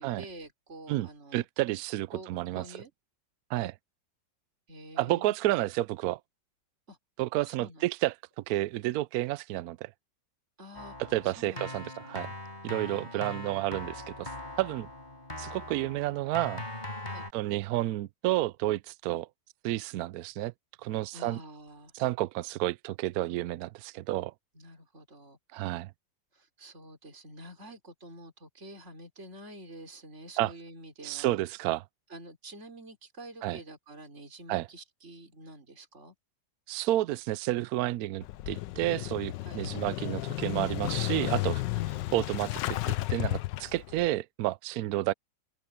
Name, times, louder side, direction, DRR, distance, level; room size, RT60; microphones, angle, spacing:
voice 1, 0.0-1.5 2.1-2.9 3.6-3.7 4.7-5.3 6.9-7.0 7.4-7.8 10.6-11.0 11.2-12.2 12.9-13.2 17.0-17.3 21.1-21.9 24.5-25.4 26.3-31.4 32.1-36.1 39.4-39.6 41.7-41.9, right 1 dB, 35° right, 4.6 m, -48 dB
voice 2, 0.9-2.6 3.5-3.7 5.0-6.2 7.2-8.1 8.5-9.9 11.1-12.3 12.6-14.3 14.6-14.9 15.4-16.6 17.3-19.3 19.6-20.5 20.8-21.4 21.9-24.3 25.5-25.9 30.4-30.5 31.0-31.8 33.4-33.6 34.5-34.7 36.7-41.6 42.1-45.1, right 16 dB, 75° right, 0.8 m, -30 dB
Keyboard (musical), 10.7-17.3, left 1 dB, 25° left, 4.5 m, -41 dB
Motorcycle / Engine starting, 38.2-44.1, left 17 dB, 80° left, 1.3 m, -33 dB
open air
omnidirectional pair, 2.0 m